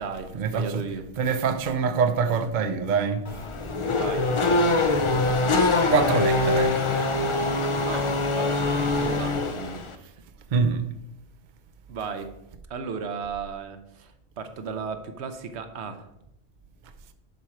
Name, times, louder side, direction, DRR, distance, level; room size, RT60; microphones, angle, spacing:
voice 1, 0.0-1.0 3.9-4.6 7.8-10.1 11.9-12.3 12.7-16.1, right 5 dB, 80° right, 1.1 m, -35 dB
voice 2, 1.2-3.2 5.9-6.8 10.5-10.8, right 5 dB, 50° right, 0.8 m, -24 dB
Race car auto racing / Accelerating revving vroom, 3.2-9.9, left 2 dB, 35° left, 0.6 m, -23 dB
11.0 x 4.4 x 4.9 m
omnidirectional pair, 1.1 m